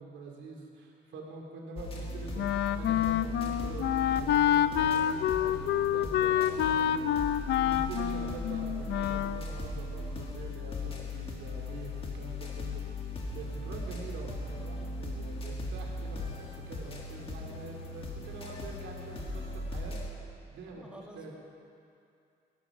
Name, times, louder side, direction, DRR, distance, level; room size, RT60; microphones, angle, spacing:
voice 1, 0.0-12.8 13.3-20.0 20.5-21.3, right 3 dB, 70° right, 0 dB, 2.7 m, -45 dB
sound 1, 1.7-20.1, left 2 dB, 30° left, 2.0 m, -38 dB
Wind instrument woodwind instrument, 2.4-9.5, left 10 dB, 65° left, 0.5 m, -28 dB
voice 2, 6.6-7.2 20.7-21.3, equal, 5° right, -1 dB, 1.9 m, -51 dB
16.5 x 14.5 x 4.9 m, 2.5 s
cardioid pair, 140°, 20 cm